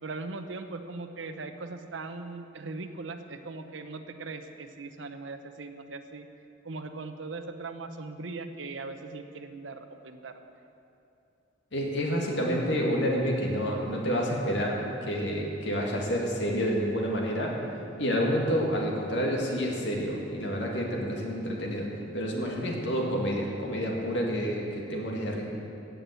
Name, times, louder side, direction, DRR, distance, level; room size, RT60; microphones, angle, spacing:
voice 1, 0.0-6.3 6.6-10.3, right 3 dB, 85° right, 8 dB, 0.9 m, -39 dB
voice 2, 11.7-17.5 18.0-21.9 22.1-25.4, equal, 70° left, -1 dB, 2.2 m, -29 dB
16.0 x 6.1 x 8.3 m, 2.7 s
head